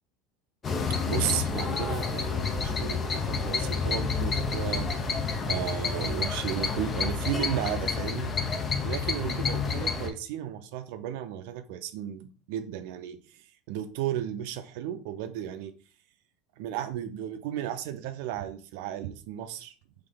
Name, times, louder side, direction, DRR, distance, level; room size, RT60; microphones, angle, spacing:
sound 1, 0.6-10.1, left 5 dB, 30° left, 0.6 m, -29 dB
voice 1, 1.0-5.2 5.5-8.3 8.8-15.7 16.6-19.7, right 11 dB, 70° right, 9 dB, 0.5 m, -34 dB
3.4 x 3.2 x 3.8 m, 0.39 s
supercardioid pair, 115°, 0 cm